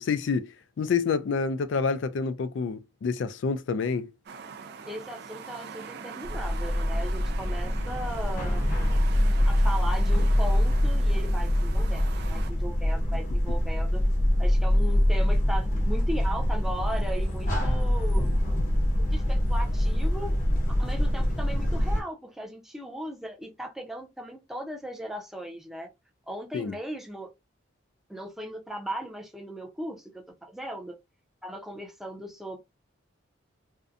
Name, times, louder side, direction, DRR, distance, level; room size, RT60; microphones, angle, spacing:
voice 1, 0.0-4.1 26.5-26.8, left 5 dB, 65° left, 0.3 m, -28 dB
sound 1, 4.3-12.5, right 6 dB, 55° right, 0.4 m, -42 dB
voice 2, 4.9-8.7 9.4-14.0 14.4-18.3 19.1-20.3 20.8-25.9 26.3-27.3 28.1-31.0 31.4-32.6, equal, ahead, 0.5 m, -37 dB
sound 2, 6.2-22.0, left 1 dB, 40° left, 0.7 m, -24 dB
2.6 x 2.1 x 2.4 m
head